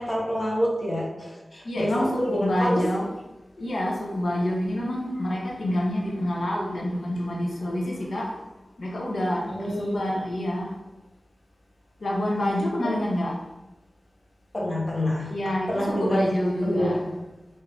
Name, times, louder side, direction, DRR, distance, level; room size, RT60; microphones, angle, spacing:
voice 1, 0.0-2.9 9.4-10.0 12.8-12.9 14.5-16.2 16.6-17.1, equal, 40° left, -4 dB, 1.1 m, -27 dB
voice 2, 1.6-3.1 3.6-8.4 8.8-10.8 12.0-13.3 15.3-17.0, left 1 dB, 80° left, -2 dB, 0.8 m, -27 dB
3.6 x 2.7 x 3.4 m, 1.0 s
wide cardioid pair, 70°, 0 cm